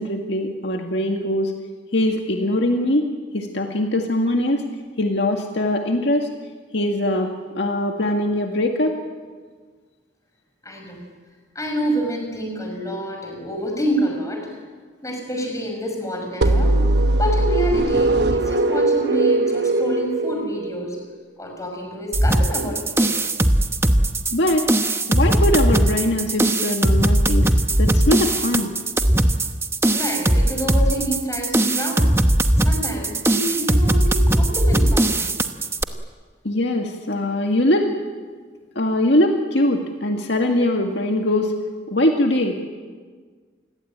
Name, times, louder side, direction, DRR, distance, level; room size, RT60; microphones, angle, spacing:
voice 1, 0.0-1.5 1.9-3.0 3.3-4.6 5.0-6.3 6.7-9.0 24.3-24.7 25.1-28.7 36.4-37.9 38.8-41.5 41.9-42.6, left 1 dB, 65° left, 2 dB, 2.0 m, -21 dB
voice 2, 10.6-11.0 11.5-14.5 15.0-16.8 17.2-21.0 21.4-23.1 29.9-32.2 32.6-35.3, equal, 15° left, 2 dB, 6.2 m, -27 dB
sound 1, 16.4-21.1, right 2 dB, 60° right, 1.1 m, -20 dB
sound 2, 22.1-35.8, right 1 dB, 15° right, 1.0 m, -19 dB
28.0 x 21.0 x 8.9 m, 1.5 s
head